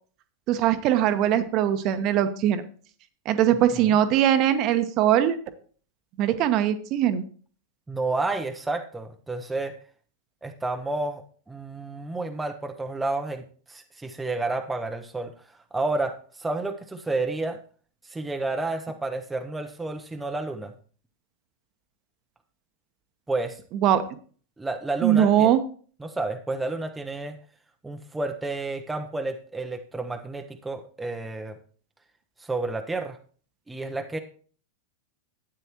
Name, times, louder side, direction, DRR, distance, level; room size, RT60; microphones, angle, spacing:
voice 1, 0.5-2.6 3.2-5.4 6.2-7.2 23.8-24.0 25.0-25.6, right 10 dB, 40° right, 10 dB, 1.0 m, -21 dB
voice 2, 7.9-9.8 10.4-15.3 15.7-17.6 18.0-20.7 23.3-23.6 24.6-25.5 26.0-27.4 27.8-31.6 32.4-33.2 33.7-34.2, right 2 dB, 10° right, 5 dB, 0.8 m, -30 dB
12.0 x 9.0 x 3.0 m, 0.43 s
figure-of-eight pair, 90°, 0 cm